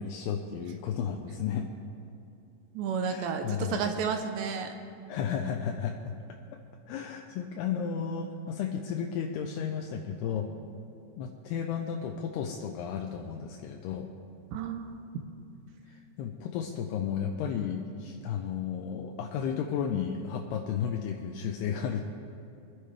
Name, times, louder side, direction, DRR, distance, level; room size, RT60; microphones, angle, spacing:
voice 1, 0.0-1.7 3.0-3.9 5.1-6.1 6.9-10.5 11.2-14.1 15.9-22.0, left 7 dB, 80° left, 2 dB, 2.3 m, -33 dB
voice 2, 2.7-4.7 14.5-15.2, right 6 dB, 80° right, 6 dB, 2.7 m, -32 dB
24.0 x 10.0 x 3.3 m, 2.7 s
omnidirectional pair, 5.3 m